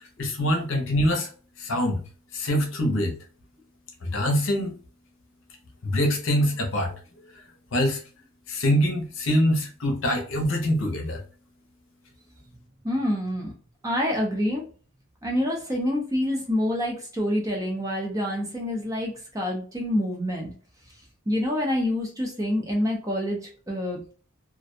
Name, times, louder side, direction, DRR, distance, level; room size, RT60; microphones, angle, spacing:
voice 1, 0.2-1.3 1.6-2.0 2.3-3.1 4.0-4.7 5.8-6.9 7.7-8.0 8.5-11.2, equal, 60° left, 2 dB, 0.7 m, -24 dB
voice 2, 12.8-13.5 13.8-14.6 15.2-20.5 21.3-24.0, left 1 dB, 15° right, 0 dB, 0.5 m, -27 dB
2.4 x 2.2 x 2.5 m, 0.38 s
head